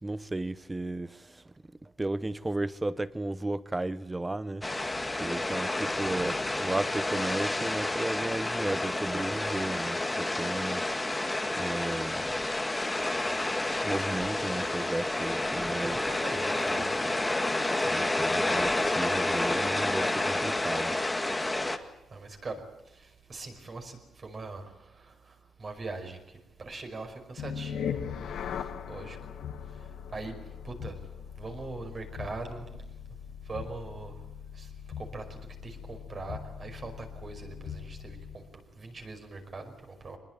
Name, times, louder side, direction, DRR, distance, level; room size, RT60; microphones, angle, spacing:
voice 1, 0.0-1.4 1.8-4.9 5.2-10.8 11.5-12.3 13.8-16.0 17.8-21.0, right 2 dB, 15° right, 0.9 m, -34 dB
sound 1, 4.6-21.8, left 2 dB, 10° left, 1.8 m, -30 dB
voice 2, 15.6-17.2 17.5-17.6 18.0-18.2 18.6-18.8 21.5-29.3 29.7-30.3 30.6-31.0 31.4-32.8 33.4-34.2 34.5-40.2, right 3 dB, 35° right, 5.2 m, -42 dB
sound 2, 27.4-38.5, left 8 dB, 75° left, 2.0 m, -40 dB
24.5 x 21.0 x 9.0 m
wide cardioid pair, 145°, 0 cm